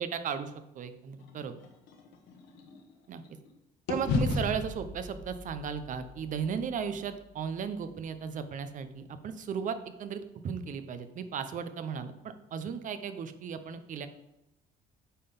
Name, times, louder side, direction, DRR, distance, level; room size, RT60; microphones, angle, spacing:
voice 1, 0.0-1.6 3.1-3.2 3.9-14.1, right 7 dB, 50° right, 10 dB, 0.7 m, -36 dB
sound 1, 1.2-3.5 3.9-8.1, left 3 dB, 85° left, 1.4 m, -36 dB
8.4 x 3.8 x 5.3 m, 0.86 s
cardioid pair, 110°, 17 cm